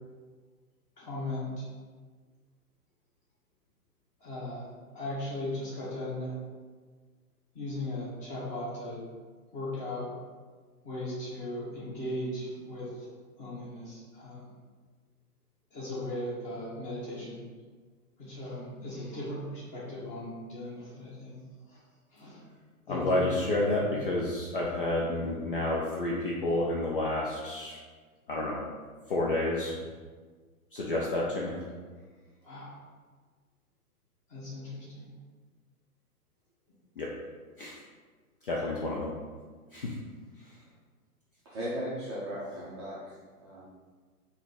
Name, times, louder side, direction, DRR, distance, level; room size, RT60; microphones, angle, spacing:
voice 1, 1.0-1.6 4.2-4.7 4.9-6.3 7.5-9.0 9.5-10.1 10.8-12.9 13.4-14.5 15.7-17.4 18.2-21.4 21.7-21.8 22.1-22.4 22.9-23.3 23.8-23.9 32.4-32.8 34.3-35.1, left 1 dB, 15° left, -7 dB, 1.2 m, -37 dB
voice 2, 22.9-27.8 28.3-28.6 29.1-29.8 30.7-31.6 37.0-37.1 37.6-37.8 38.4-39.1 39.7-40.0, left 2 dB, 40° left, -4 dB, 0.5 m, -30 dB
voice 3, 41.4-43.1 43.4-43.6, equal, 20° right, -9 dB, 0.5 m, -37 dB
3.8 x 2.8 x 4.6 m, 1.5 s
figure-of-eight pair, 115°, 46 cm